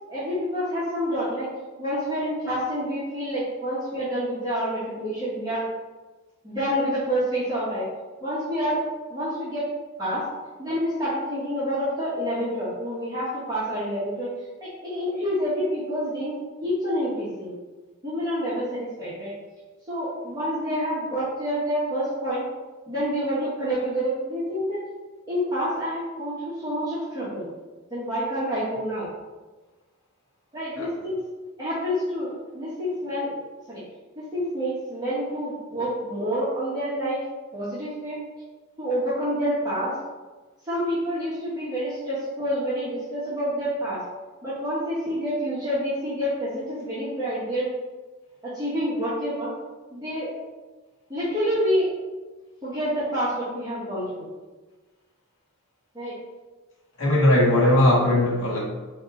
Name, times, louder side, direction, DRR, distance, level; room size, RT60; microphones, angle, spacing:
voice 1, 0.1-1.5 1.8-5.7 6.4-7.9 8.2-8.8 9.1-9.7 10.0-10.2 10.6-17.6 18.0-19.3 19.9-22.4 22.9-24.8 25.3-27.5 27.9-29.1 30.5-31.2 31.6-33.4 33.7-33.8 34.1-37.2 37.5-38.2 38.8-40.0 40.7-44.0 44.4-47.7 48.4-49.5 49.9-50.3 51.1-51.9 52.6-54.3 55.9-56.2, equal, 20° right, -11 dB, 1.1 m, -28 dB
voice 2, 57.0-58.6, left 1 dB, 65° left, -5 dB, 1.5 m, -19 dB
4.6 x 2.8 x 3.7 m, 1.2 s
head